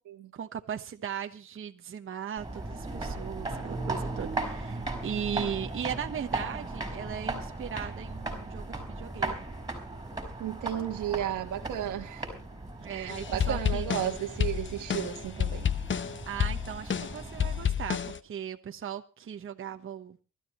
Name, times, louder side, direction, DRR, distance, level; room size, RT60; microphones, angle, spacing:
voice 1, 0.3-9.3 12.8-13.8 16.3-20.2, right 8 dB, 45° right, 1.2 m, -38 dB
sound 1, 2.4-17.6, right 2 dB, 15° right, 5.0 m, -37 dB
voice 2, 10.4-12.3 12.9-15.7, right 11 dB, 80° right, 1.5 m, -33 dB
sound 2, 13.1-18.2, left 8 dB, 40° left, 0.9 m, -30 dB
24.0 x 13.0 x 3.1 m
cardioid pair, 90°, 30 cm